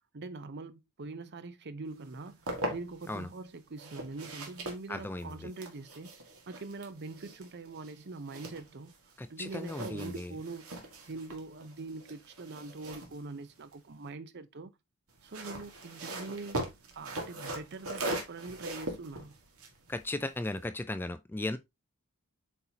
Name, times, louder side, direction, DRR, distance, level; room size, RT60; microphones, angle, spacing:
voice 1, 0.1-6.1 6.5-8.9 9.3-10.7 11.1-14.7 15.2-19.4, right 3 dB, 50° right, 0.6 m, -43 dB
sound 1, 2.0-3.2 3.8-9.2 9.4-14.1 15.1-20.7, right 1 dB, 75° right, 1.8 m, -41 dB
voice 2, 4.9-5.5 9.2-10.3 19.9-21.6, left 2 dB, 10° left, 0.3 m, -36 dB
7.9 x 4.2 x 2.8 m
head